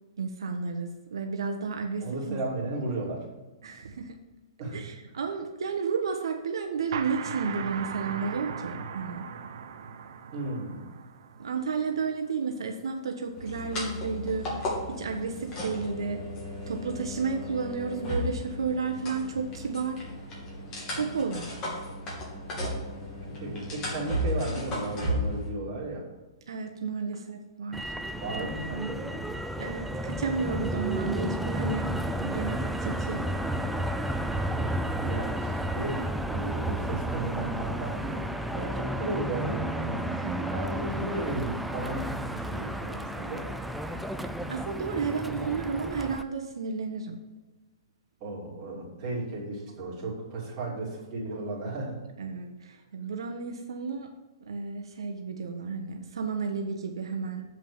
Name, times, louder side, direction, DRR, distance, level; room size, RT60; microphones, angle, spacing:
voice 1, 0.2-2.4 3.6-4.2 4.7-9.3 11.4-16.3 16.7-20.1 20.9-21.8 26.5-27.9 28.4-28.9 29.6-31.9 32.2-33.3 40.1-40.5 44.5-47.2 52.2-54.1 54.4-57.4, right 5 dB, 90° right, 4 dB, 1.1 m, -32 dB
voice 2, 2.0-3.3 4.6-4.9 10.3-10.9 23.3-26.0 28.1-29.1 34.3-40.0 40.5-43.5 45.3-45.5 48.2-51.9, right 2 dB, 30° right, -4 dB, 3.1 m, -35 dB
sound 1, 6.9-12.3, right 6 dB, 60° right, 0.8 m, -39 dB
sound 2, 13.4-25.5, left 1 dB, 25° left, 2.6 m, -34 dB
Motor vehicle (road), 27.7-46.2, right 1 dB, ahead, 0.3 m, -32 dB
7.5 x 5.3 x 7.1 m, 1.2 s
hypercardioid pair, 160°, 3 cm